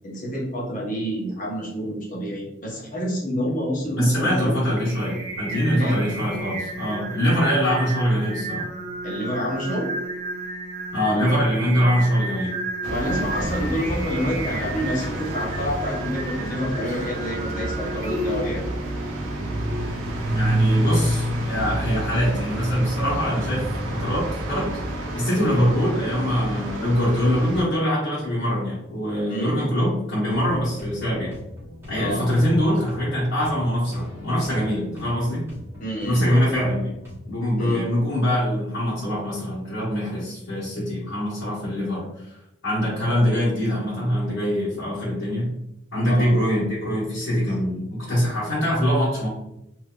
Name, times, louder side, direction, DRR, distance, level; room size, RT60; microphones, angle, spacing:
voice 1, 0.0-4.5 5.7-6.1 9.0-9.9 12.9-18.6 29.3-29.6 32.0-32.3 35.8-36.2 37.6-37.8 46.0-46.3, equal, 40° left, -5 dB, 1.0 m, -28 dB
voice 2, 3.9-8.7 10.9-12.5 20.3-24.7 25.1-31.3 31.9-35.5 36.0-37.0 37.3-42.4 42.6-45.5 45.9-49.3, equal, 85° left, -10 dB, 1.4 m, -23 dB
Singing, 4.3-20.5, right 2 dB, 50° right, 0.7 m, -33 dB
sound 1, 12.8-27.6, right 1 dB, 90° right, 0.6 m, -28 dB
sound 2, 30.3-37.2, left 1 dB, 10° right, 1.0 m, -41 dB
3.3 x 2.8 x 2.4 m, 0.86 s
head